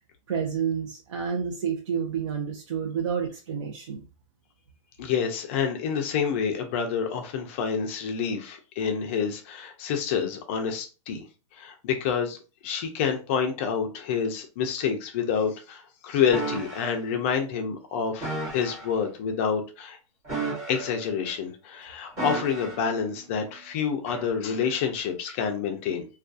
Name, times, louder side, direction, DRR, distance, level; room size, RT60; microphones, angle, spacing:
voice 1, 0.3-4.0, right 7 dB, 65° right, -1 dB, 0.6 m, -29 dB
voice 2, 5.0-11.3 11.5-12.4 12.6-20.0 20.7-26.1, left 7 dB, 25° left, 4 dB, 0.4 m, -28 dB
sound 1, 16.3-16.9 18.2-18.9 20.2-21.2 22.2-22.9 24.1-24.3, right 2 dB, 20° right, 1.2 m, -33 dB
2.3 x 2.3 x 2.5 m, 0.33 s
hypercardioid pair, 165°, 17 cm